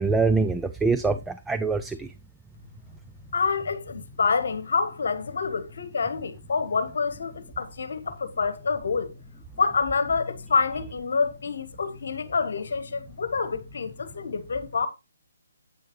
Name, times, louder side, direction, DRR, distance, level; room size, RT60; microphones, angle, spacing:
voice 1, 0.0-2.1, right 4 dB, 5° right, 0.4 m, -24 dB
voice 2, 3.3-9.1 9.6-14.9, left 5 dB, 60° left, 1.2 m, -27 dB
9.1 x 8.4 x 3.1 m
figure-of-eight pair, 140°, 0 cm